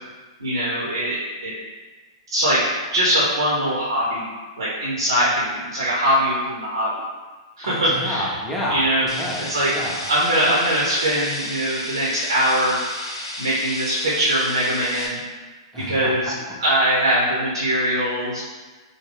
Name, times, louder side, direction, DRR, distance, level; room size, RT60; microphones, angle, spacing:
voice 1, 0.4-1.5 2.3-2.6 2.9-4.3 4.6-6.9 7.6-8.3 8.7-9.0 9.5-9.7 10.1-12.8 13.4-15.2 15.8-16.3 16.6-18.4, right 1 dB, 80° right, -6 dB, 0.9 m, -21 dB
voice 2, 7.6-10.0 15.7-16.3, left 1 dB, 10° left, -4 dB, 0.7 m, -29 dB
sound 1, 9.1-15.1, left 1 dB, 80° left, 0.8 m, -32 dB
3.7 x 2.2 x 3.4 m, 1.3 s
hypercardioid pair, 110°, 3 cm